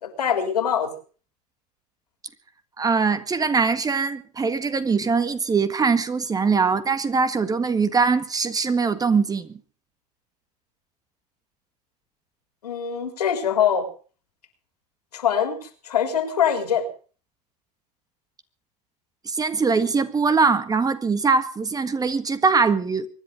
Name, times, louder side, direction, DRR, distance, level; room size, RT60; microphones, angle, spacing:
voice 1, 0.0-0.9 12.6-13.9 15.1-16.8, left 8 dB, 90° left, 3.7 m, -23 dB
voice 2, 2.8-9.5 19.2-23.1, right 4 dB, 20° right, 1.7 m, -22 dB
24.0 x 10.5 x 5.2 m
hypercardioid pair, 100°, 20 cm